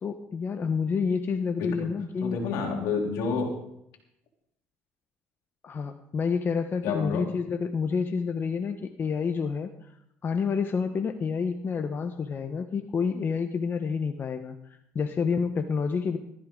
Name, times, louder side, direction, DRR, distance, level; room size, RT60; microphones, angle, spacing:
voice 1, 0.0-2.4 5.6-9.9 10.2-14.6 14.9-16.2, left 5 dB, 40° left, 7 dB, 1.1 m, -28 dB
voice 2, 1.6-1.9 2.2-3.6 6.8-7.3, left 4 dB, 80° left, 1 dB, 3.5 m, -29 dB
15.5 x 14.0 x 3.9 m, 0.78 s
supercardioid pair, 85°, 5 cm